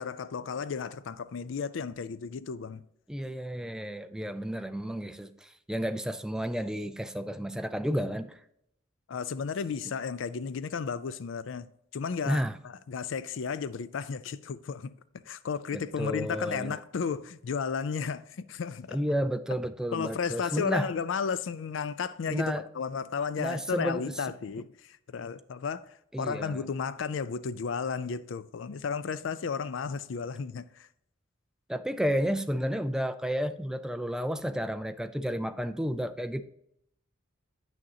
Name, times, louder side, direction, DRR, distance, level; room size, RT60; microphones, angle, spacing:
voice 1, 0.0-2.8 9.1-11.7 11.9-14.9 15.3-19.0 19.9-25.8 26.2-30.9, left 6 dB, 70° left, 0.4 m, -33 dB
voice 2, 3.1-8.4 12.2-12.5 15.7-16.8 18.9-20.9 22.3-22.6 23.4-24.1 26.1-26.7 31.7-36.4, equal, 5° right, 0.4 m, -31 dB
8.8 x 6.3 x 2.8 m
head